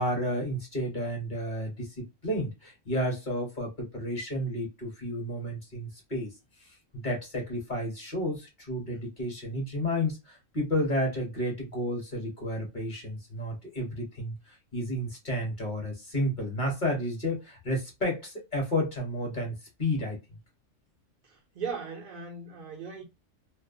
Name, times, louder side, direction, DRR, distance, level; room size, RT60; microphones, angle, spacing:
voice 1, 0.0-6.3 6.6-20.2, left 1 dB, 40° left, 0.9 m, -31 dB
voice 2, 21.2-23.0, right 5 dB, 50° right, 0.6 m, -38 dB
2.3 x 2.1 x 2.5 m
omnidirectional pair, 1.3 m